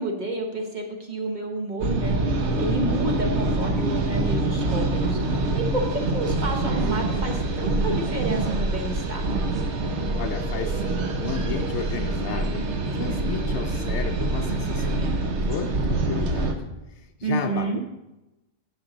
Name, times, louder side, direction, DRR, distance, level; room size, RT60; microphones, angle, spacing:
voice 1, 0.0-2.2 2.6-5.2 5.5-5.9 6.1-9.2 17.2-17.8, right 2 dB, 35° right, 2 dB, 1.1 m, -29 dB
sound 1, 1.8-16.5, right 2 dB, 60° right, 1.1 m, -25 dB
voice 2, 10.1-12.7 12.9-17.8, left 7 dB, 65° left, 7 dB, 0.8 m, -34 dB
10.0 x 6.2 x 3.9 m, 0.99 s
omnidirectional pair, 1.4 m